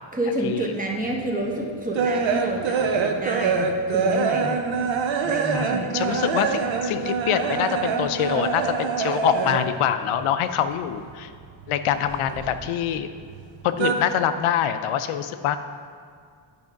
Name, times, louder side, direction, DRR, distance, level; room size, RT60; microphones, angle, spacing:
voice 1, 0.1-4.6 5.2-5.9, right 1 dB, 15° right, -1 dB, 0.9 m, -29 dB
sound 1, 1.1-9.9 10.1-11.3 11.6-13.0 13.3-13.9, right 5 dB, 65° right, 0.7 m, -25 dB
voice 2, 5.5-11.3 11.7-13.1 13.6-15.6, left 9 dB, 85° left, 10 dB, 0.5 m, -25 dB
8.8 x 3.5 x 5.7 m, 2.2 s
wide cardioid pair, 145°, 49 cm